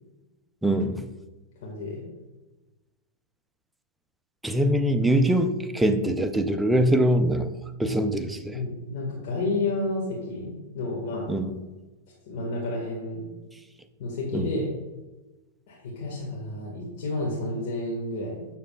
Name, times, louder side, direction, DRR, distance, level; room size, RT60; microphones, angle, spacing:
voice 1, 0.6-1.1 4.4-7.5 7.8-8.6 11.3-11.5 14.3-14.5, right 1 dB, 5° right, 7 dB, 0.4 m, -23 dB
voice 2, 1.6-2.0 8.5-11.3 12.3-13.2 14.0-14.6 15.7-18.5, left 2 dB, 55° left, -3 dB, 1.6 m, -30 dB
7.4 x 6.5 x 2.3 m, 1.2 s
hypercardioid pair, 135°, 0 cm